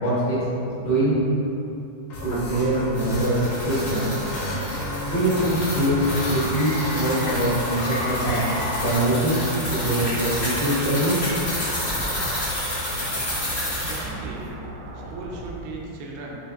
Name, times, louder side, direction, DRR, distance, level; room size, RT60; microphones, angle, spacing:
voice 1, 0.0-0.4 0.8-1.2 2.2-4.1 5.1-8.4 8.8-9.4 9.7-11.2, right 1 dB, 65° left, -9 dB, 1.9 m, -23 dB
sound 1, 2.1-9.0, left 1 dB, 85° left, 0.7 m, -31 dB
sound 2, 2.7-14.1, left 1 dB, 40° left, 0.6 m, -30 dB
sound 3, 7.7-15.9, right 2 dB, 70° right, 1.0 m, -38 dB
voice 2, 13.8-14.5 15.1-16.4, right 3 dB, 85° right, -2 dB, 0.7 m, -37 dB
5.3 x 3.1 x 2.4 m, 2.7 s
omnidirectional pair, 2.2 m